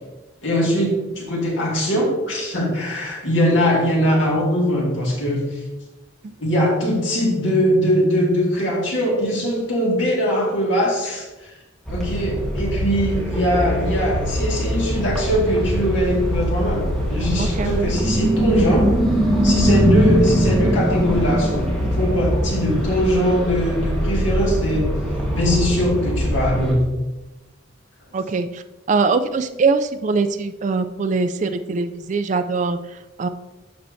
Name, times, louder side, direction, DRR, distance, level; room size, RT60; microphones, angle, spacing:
voice 1, 0.4-5.6 6.4-11.5 11.9-18.9 19.4-21.6 22.0-24.9 25.3-26.9, equal, 70° left, -3 dB, 2.0 m, -21 dB
sound 1, 11.9-26.7, equal, 5° left, 1.4 m, -21 dB
voice 2, 17.4-17.7 28.1-28.6 28.9-33.3, right 4 dB, 40° right, 9 dB, 0.3 m, -22 dB
12.0 x 4.4 x 2.7 m, 1.1 s
head